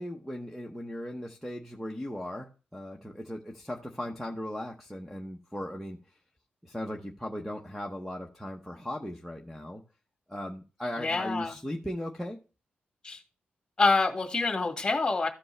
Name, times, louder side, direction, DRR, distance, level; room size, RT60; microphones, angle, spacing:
voice 1, 0.0-6.2 6.6-9.8 10.3-12.4, left 1 dB, ahead, 0.8 m, -38 dB
voice 2, 11.0-11.5 13.0-13.2 13.8-15.3, left 3 dB, 20° left, 1.9 m, -26 dB
14.0 x 5.1 x 3.3 m
wide cardioid pair, 140°, 3 cm